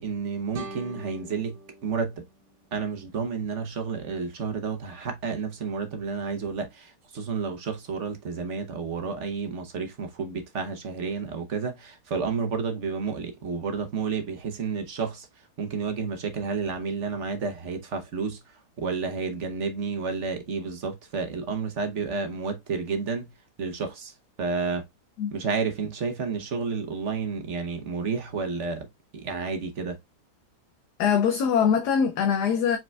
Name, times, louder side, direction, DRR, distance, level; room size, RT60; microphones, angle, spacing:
voice 1, 0.0-2.2 2.7-15.3 15.6-23.3 23.6-24.8 25.3-28.9 29.1-30.0, right 5 dB, 55° right, 1.1 m, -31 dB
sound 1, 0.5-3.5, right 3 dB, 85° right, 1.5 m, -44 dB
voice 2, 31.0-32.8, left 7 dB, 80° left, 1.3 m, -22 dB
5.0 x 4.4 x 2.2 m
omnidirectional pair, 1.7 m